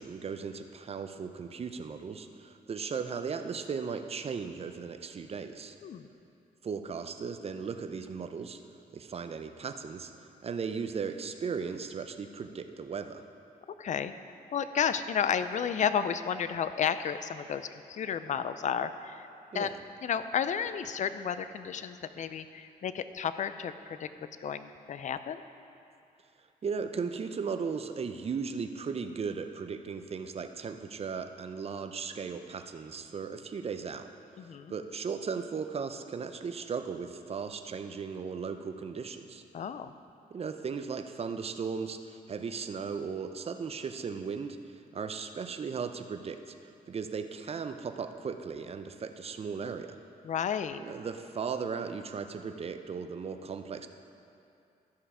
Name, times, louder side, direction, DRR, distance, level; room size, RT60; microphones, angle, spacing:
voice 1, 0.0-5.7 6.6-8.6 8.9-10.1 10.4-13.2 19.5-19.8 26.6-34.1 34.7-39.4 40.3-46.5 46.9-50.0 50.8-53.9, right 5 dB, 40° right, 8 dB, 0.6 m, -37 dB
voice 2, 13.8-14.1 14.5-19.3 19.5-19.7 20.0-24.1 24.4-25.4 34.4-34.7 39.5-39.9 50.2-50.8, left 8 dB, 50° left, 12 dB, 0.5 m, -32 dB
13.0 x 5.7 x 4.9 m, 2.6 s
cardioid pair, 90°, 16 cm